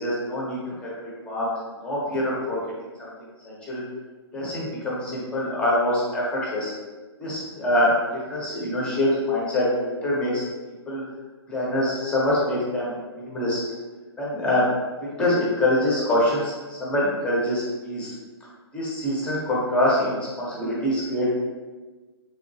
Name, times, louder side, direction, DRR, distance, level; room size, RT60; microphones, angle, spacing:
voice 1, 0.0-1.5 1.8-2.6 3.0-3.1 3.4-3.8 4.3-6.7 7.2-10.5 10.9-11.0 11.5-13.6 14.2-14.6 15.0-18.1 18.7-21.3, left 1 dB, 5° left, -6 dB, 0.6 m, -25 dB
3.4 x 2.8 x 2.6 m, 1.3 s
hypercardioid pair, 155°, 14 cm